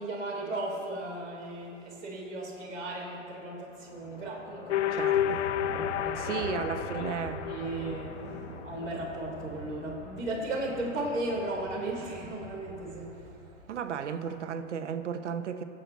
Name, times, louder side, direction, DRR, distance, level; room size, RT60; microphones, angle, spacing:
voice 1, 0.0-5.2 5.9-6.5 6.8-7.1 7.4-8.2 8.6-13.2, right 2 dB, 5° left, -12 dB, 0.4 m, -36 dB
sound 1, 1.1-15.0, left 3 dB, 90° left, 1.7 m, -49 dB
sound 2, 4.7-8.6, left 10 dB, 70° left, 0.6 m, -31 dB
voice 2, 4.9-5.4 6.1-7.4 13.7-15.6, right 7 dB, 70° right, 8 dB, 1.1 m, -34 dB
sound 3, 5.1-13.9, right 3 dB, 15° right, 0.8 m, -45 dB
23.0 x 7.9 x 4.2 m, 2.5 s
hypercardioid pair, 180°, 37 cm